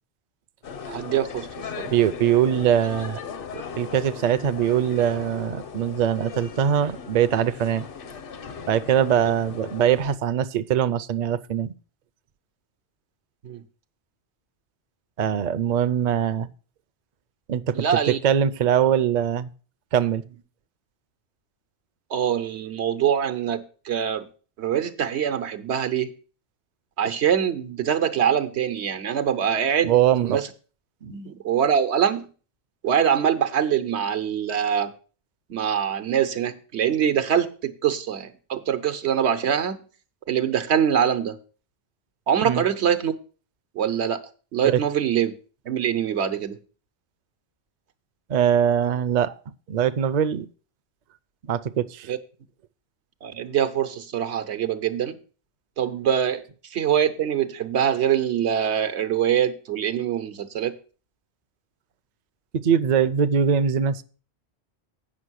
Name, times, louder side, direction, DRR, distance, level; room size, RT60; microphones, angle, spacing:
sound 1, 0.6-10.2, left 6 dB, 60° left, 0.9 m, -38 dB
voice 1, 0.9-1.9 13.4-13.6 17.7-18.2 22.1-24.3 24.6-26.1 27.0-30.0 30.2-30.5 31.1-32.3 32.8-34.9 35.5-39.8 40.3-41.4 42.3-43.1 43.7-44.2 44.5-45.3 45.6-46.6 52.1-52.2 53.2-55.2 55.8-56.4 56.7-60.7, right 8 dB, 90° right, 1.2 m, -24 dB
voice 2, 1.9-3.2 3.5-7.9 8.7-11.7 15.2-16.5 17.5-17.9 18.2-19.5 19.9-20.2 29.8-30.4 31.0-31.1 42.4-42.6 44.7-44.8 48.3-49.3 49.7-50.5 51.4-52.1 62.6-64.0, right 9 dB, 55° right, 0.5 m, -22 dB
8.5 x 6.0 x 6.3 m
omnidirectional pair, 1.1 m